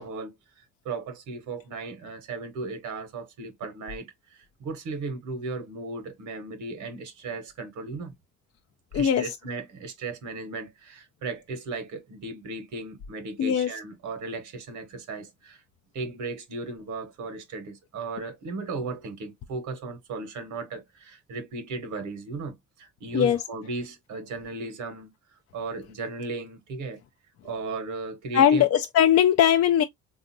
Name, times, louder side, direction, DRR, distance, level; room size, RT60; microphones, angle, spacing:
voice 1, 0.0-8.1 8.9-15.6 15.9-27.0 27.4-28.7, right 3 dB, 75° right, 0.9 m, -36 dB
voice 2, 28.3-29.8, left 9 dB, 55° left, 0.4 m, -20 dB
3.6 x 2.4 x 2.6 m
cardioid pair, 90°, 30 cm